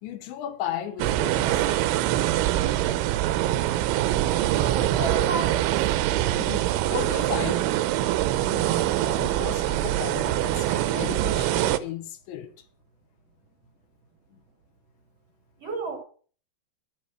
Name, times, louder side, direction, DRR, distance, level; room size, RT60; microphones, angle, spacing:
voice 1, 0.0-1.7 6.4-7.7 8.5-12.7 14.3-14.4, left 10 dB, 80° left, 3.2 m, -35 dB
sound 1, 1.0-11.8, right 14 dB, 80° right, 3.0 m, -24 dB
voice 2, 4.3-5.7 15.6-16.0, right 2 dB, 45° right, 2.3 m, -32 dB
11.5 x 8.3 x 5.7 m
omnidirectional pair, 5.4 m